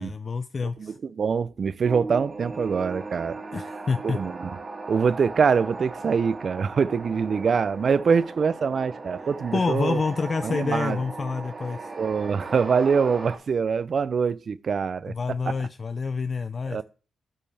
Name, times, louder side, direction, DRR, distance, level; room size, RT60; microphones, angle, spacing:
voice 1, 0.0-1.0 3.5-4.2 9.5-11.9 15.1-16.8, left 4 dB, 45° left, 0.4 m, -28 dB
voice 2, 0.8-3.4 4.0-4.5 4.9-10.0 10.4-11.0 12.0-15.1 16.7-16.8, right 6 dB, 55° right, 0.4 m, -24 dB
sound 1, 1.8-13.4, right 3 dB, 40° right, 1.7 m, -38 dB
8.6 x 5.4 x 3.3 m
cardioid pair, 65°, 0 cm